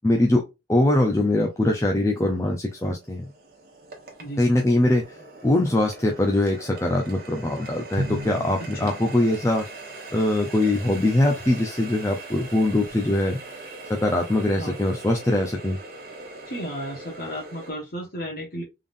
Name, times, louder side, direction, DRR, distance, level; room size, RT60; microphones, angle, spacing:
voice 1, 0.0-0.4 0.7-3.3 4.4-9.7 10.1-13.4 13.9-15.8, left 1 dB, 15° left, 1 dB, 0.5 m, -22 dB
Water tap faucet, 1.2-1.3 1.9-17.7, right 3 dB, 55° right, 1.2 m, -42 dB
Drum, 8.0-9.7, equal, 75° right, 0.9 m, -33 dB
voice 2, 16.5-18.6, equal, 50° left, -2 dB, 1.2 m, -33 dB
3.7 x 3.4 x 2.5 m, 0.24 s
head